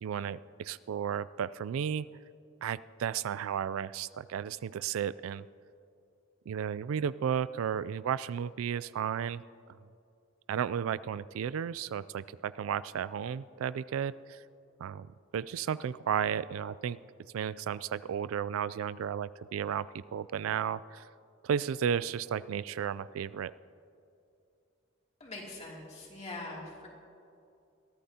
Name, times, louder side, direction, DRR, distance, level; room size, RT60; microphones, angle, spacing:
voice 1, 0.0-2.1 2.6-5.5 6.5-9.4 10.5-14.4 14.8-15.1 15.3-17.0 17.3-21.0 21.4-23.5, right 8 dB, 90° right, 18 dB, 0.3 m, -33 dB
voice 2, 25.2-26.9, left 2 dB, 35° left, -3 dB, 2.7 m, -43 dB
22.0 x 13.5 x 2.8 m, 2.5 s
head